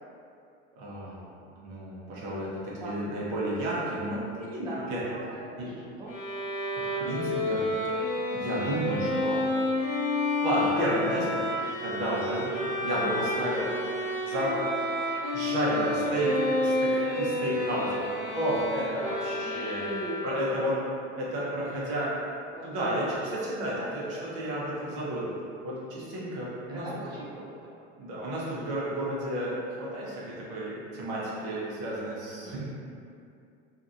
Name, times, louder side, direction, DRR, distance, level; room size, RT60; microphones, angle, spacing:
voice 1, 0.8-5.0 5.6-5.7 6.7-7.7 8.3-9.4 10.4-11.5 11.8-12.5 12.8-13.7 14.3-14.7 15.3-18.0 18.3-19.9 20.2-20.8 21.2-22.1 22.6-25.3 25.6-26.9 28.0-32.6, right 1 dB, 60° right, -6 dB, 0.9 m, -31 dB
voice 2, 4.7-6.1 19.4-20.4 22.5-23.2 23.7-24.2 26.7-27.7 32.4-32.5, right 2 dB, 15° right, -6 dB, 0.4 m, -40 dB
Bowed string instrument, 6.1-20.6, left 1 dB, 60° left, 0.7 m, -30 dB
2.7 x 2.2 x 2.6 m, 2.5 s
hypercardioid pair, 85°, 35 cm